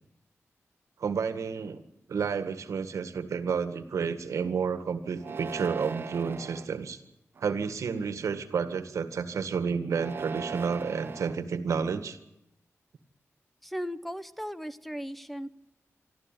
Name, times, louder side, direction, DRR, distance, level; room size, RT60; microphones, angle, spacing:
voice 1, 1.0-1.8 2.1-7.0 7.4-12.2, right 6 dB, 85° right, 10 dB, 1.8 m, -31 dB
sound 1, 5.2-6.7 7.4-7.9 9.9-11.4, right 5 dB, 50° right, 0.9 m, -39 dB
voice 2, 13.6-15.6, equal, ahead, 13 dB, 0.9 m, -37 dB
24.5 x 13.5 x 9.1 m, 0.88 s
wide cardioid pair, 170°, 5 cm